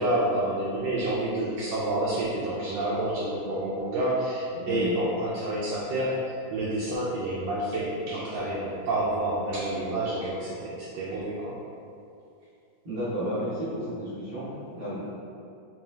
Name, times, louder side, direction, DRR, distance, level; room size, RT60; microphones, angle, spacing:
voice 1, 0.0-11.6, right 1 dB, 85° right, -7 dB, 1.3 m, -29 dB
voice 2, 4.6-5.0 12.8-15.1, equal, 30° right, -14 dB, 0.7 m, -32 dB
3.2 x 3.1 x 3.3 m, 2.6 s
omnidirectional pair, 2.1 m